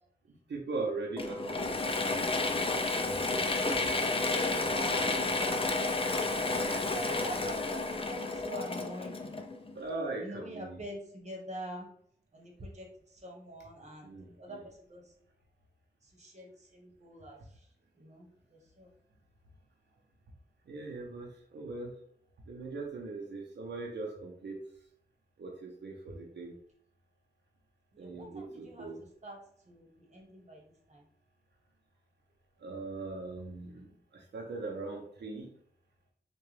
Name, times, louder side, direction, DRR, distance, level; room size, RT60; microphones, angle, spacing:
voice 1, 0.5-2.8 3.3-4.0 4.3-4.6 6.7-6.8 9.7-10.8 14.0-14.6 20.7-21.9 22.5-24.6 25.4-26.5 28.0-29.0 32.6-35.5, right 3 dB, 85° right, -1 dB, 0.6 m, -40 dB
Mechanisms / Drill, 1.2-9.8, left 3 dB, 30° left, 0.5 m, -31 dB
voice 2, 3.6-9.3 10.2-11.9 12.3-12.9 13.2-14.0 14.4-14.6 14.9-15.0 16.2-17.4 18.0-18.3 18.8-18.9 27.9-28.9 29.2-29.4 29.7-30.6 30.9-31.0, equal, 40° right, 0 dB, 1.2 m, -44 dB
3.6 x 2.3 x 3.2 m, 0.63 s
cardioid pair, 45°, 17 cm